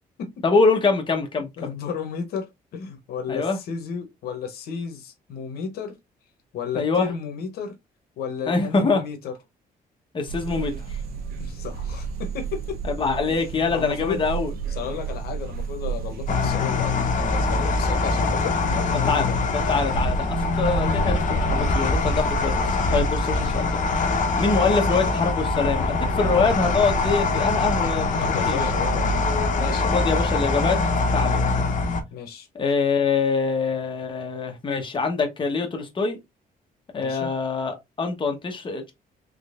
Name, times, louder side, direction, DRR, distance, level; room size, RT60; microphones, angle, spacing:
voice 1, 0.4-1.7 3.3-3.6 6.7-7.1 8.5-9.0 10.1-11.0 12.9-14.5 19.1-19.3 19.7-23.8 24.4-28.7 29.9-30.8 31.1-31.4 32.5-36.2 36.9-38.9, left 4 dB, 30° left, 1.1 m, -24 dB
voice 2, 1.6-6.0 6.5-7.8 8.2-9.3 11.4-12.8 13.7-14.2 14.7-19.4 27.9-30.0 32.1-32.5 37.0-37.3, left 6 dB, 80° left, 0.9 m, -33 dB
sound 1, 10.3-16.5, right 7 dB, 75° right, 0.7 m, -32 dB
sound 2, 16.3-32.0, left 3 dB, 55° left, 0.9 m, -23 dB
3.8 x 3.2 x 2.5 m
cardioid pair, 110°, 16 cm